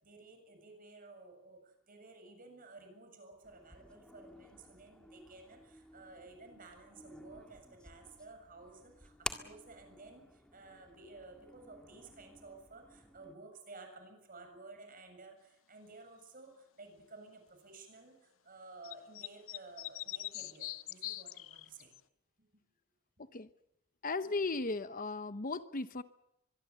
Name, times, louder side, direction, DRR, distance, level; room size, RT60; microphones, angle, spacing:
voice 1, 0.0-21.9 22.4-22.5, right 3 dB, 45° right, 6 dB, 7.4 m, -54 dB
sound 1, 3.4-13.3, left 1 dB, 5° left, 1.8 m, -51 dB
sound 2, 18.8-22.0, left 15 dB, 85° left, 0.9 m, -42 dB
voice 2, 23.2-23.5 24.0-26.0, left 3 dB, 45° left, 12 dB, 0.9 m, -36 dB
24.0 x 22.5 x 8.4 m, 0.80 s
head